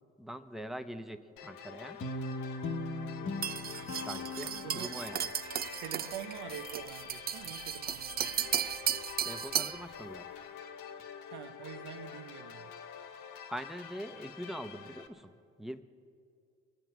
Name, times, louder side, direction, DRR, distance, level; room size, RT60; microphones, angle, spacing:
voice 1, 0.2-2.0 4.0-5.3 9.2-10.3 13.5-15.8, equal, ahead, 0.8 m, -43 dB
sound 1, 1.4-15.1, left 7 dB, 80° left, 1.1 m, -47 dB
Guitar, 2.0-5.3, left 2 dB, 45° left, 1.2 m, -39 dB
sound 2, 3.4-9.8, right 9 dB, 30° right, 0.4 m, -35 dB
voice 2, 4.5-4.9 5.8-8.5 11.3-12.7, right 10 dB, 75° right, 0.8 m, -45 dB
22.0 x 7.9 x 5.9 m
supercardioid pair, 70°, 30 cm